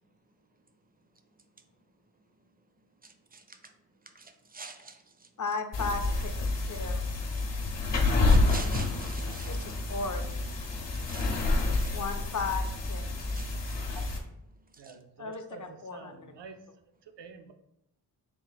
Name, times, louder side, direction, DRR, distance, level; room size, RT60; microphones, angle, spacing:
voice 1, 3.0-3.6 4.2-5.0 8.3-9.7 11.1-11.4 11.8-12.0 13.3-13.5 14.8-14.9, right 3 dB, 25° right, 7 dB, 0.4 m, -45 dB
voice 2, 5.4-7.0 9.5-10.2 11.9-13.0 15.2-16.3, left 4 dB, 45° left, 7 dB, 0.5 m, -35 dB
sound 1, 5.7-14.2, left 2 dB, 80° left, 0.7 m, -28 dB
voice 3, 14.8-16.6 17.1-17.5, right 5 dB, 80° right, 6 dB, 0.5 m, -48 dB
3.7 x 2.4 x 3.8 m, 0.81 s
wide cardioid pair, 75°, 42 cm